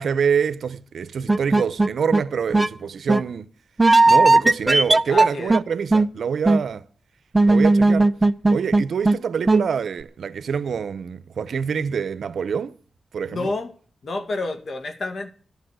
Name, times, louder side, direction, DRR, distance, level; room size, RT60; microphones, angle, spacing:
voice 1, 0.0-3.5 4.1-6.9 7.5-8.1 8.5-12.8 13.1-13.5, right 6 dB, 80° right, 0.8 m, -25 dB
sound 1, 1.3-2.2 2.5-2.7 3.1-3.2 3.8-5.6 5.9-6.1 6.5-6.6 7.3-9.2 9.5-9.6, right 2 dB, 20° right, 0.6 m, -16 dB
voice 2, 5.1-5.6 13.3-13.7 14.0-15.3, left 2 dB, 60° left, 2.1 m, -29 dB
13.0 x 10.5 x 6.2 m
cardioid pair, 80°, 0 cm